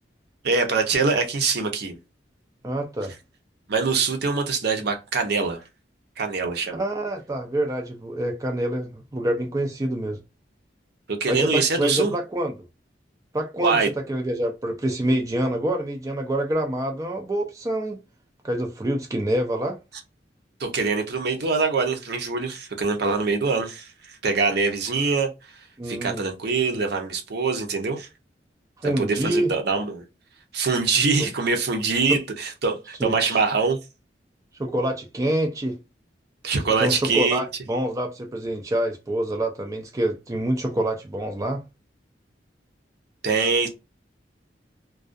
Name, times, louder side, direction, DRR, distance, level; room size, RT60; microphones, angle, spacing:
voice 1, 0.4-2.0 3.7-5.6 6.2-6.8 11.1-12.1 13.6-13.9 20.6-25.3 25.8-28.1 28.8-30.0 30.5-33.8 36.4-37.4 43.2-43.7, right 4 dB, 65° right, 0.7 m, -24 dB
voice 2, 2.6-3.1 6.7-10.2 11.3-12.5 13.3-13.8 14.1-18.0 18.4-19.8 25.8-26.3 28.8-29.5 32.1-32.2 33.0-33.4 34.6-35.8 36.8-41.6, right 1 dB, 20° right, 0.4 m, -26 dB
2.3 x 2.3 x 2.5 m
head